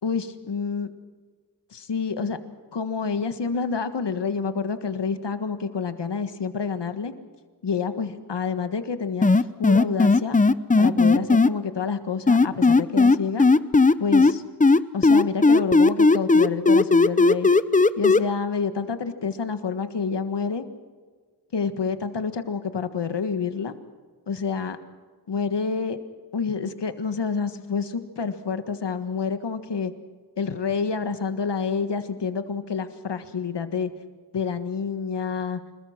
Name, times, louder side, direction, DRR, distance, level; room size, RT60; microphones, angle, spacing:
voice 1, 0.0-0.9 1.7-2.4 2.7-7.1 7.6-10.4 10.8-13.5 14.0-14.4 14.9-17.5 18.0-20.7 21.5-23.7 24.3-24.8 25.3-26.0 26.3-29.9 30.4-33.9 34.3-35.6, left 5 dB, 90° left, 10 dB, 1.6 m, -28 dB
sound 1, 9.2-11.5 12.3-14.3 14.6-18.2, left 3 dB, 20° left, 0.7 m, -16 dB
26.5 x 20.5 x 5.9 m, 1.5 s
wide cardioid pair, 90°, 40 cm